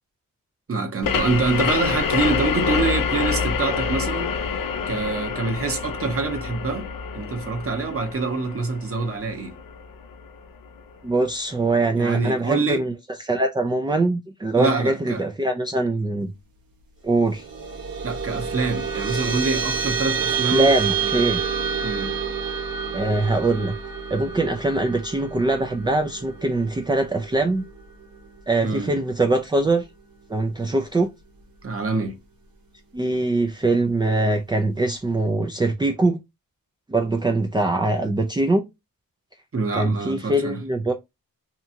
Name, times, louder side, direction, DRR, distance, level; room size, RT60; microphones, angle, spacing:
voice 1, 0.7-6.9 7.1-9.5 12.0-12.8 14.6-15.2 18.0-20.7 21.0-21.4 21.8-22.1 28.6-28.9 31.6-32.1 39.5-40.6, right 3 dB, 40° right, 0.9 m, -26 dB
sound 1, 1.0-10.4, left 6 dB, 70° left, 0.6 m, -27 dB
voice 2, 11.0-12.9 13.2-16.3 17.0-17.5 20.4-21.4 22.9-23.7 24.1-27.6 28.5-29.9 30.3-31.1 32.9-36.2 36.9-38.6 39.7-40.9, right 2 dB, 15° right, 0.4 m, -22 dB
sound 2, 17.3-28.0, right 6 dB, 70° right, 1.0 m, -28 dB
2.8 x 2.3 x 2.7 m
cardioid pair, 75°, 36 cm